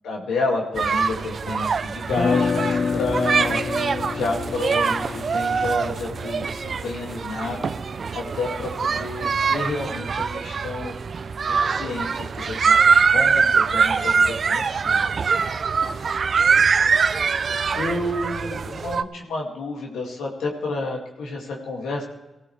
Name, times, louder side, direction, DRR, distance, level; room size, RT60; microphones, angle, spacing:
voice 1, 0.0-3.8 4.1-7.7 8.1-11.0 11.5-15.0 17.7-22.0, left 2 dB, 85° left, -1 dB, 2.2 m, -30 dB
sound 1, 0.8-19.0, right 5 dB, 60° right, 0.5 m, -23 dB
sound 2, 2.1-8.1, left 5 dB, 55° left, 0.4 m, -28 dB
19.0 x 15.5 x 3.3 m, 1.0 s
supercardioid pair, 45°, 0 cm